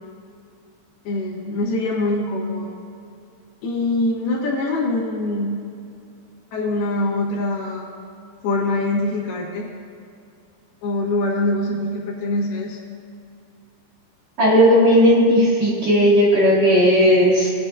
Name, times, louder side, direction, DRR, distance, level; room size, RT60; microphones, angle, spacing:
voice 1, 1.0-2.7 3.6-5.6 6.5-7.9 8.4-9.7 10.8-12.8, left 2 dB, 70° left, -5 dB, 3.3 m, -23 dB
voice 2, 14.4-17.5, equal, 50° right, -8 dB, 3.0 m, -15 dB
19.0 x 8.8 x 2.4 m, 2.5 s
omnidirectional pair, 4.9 m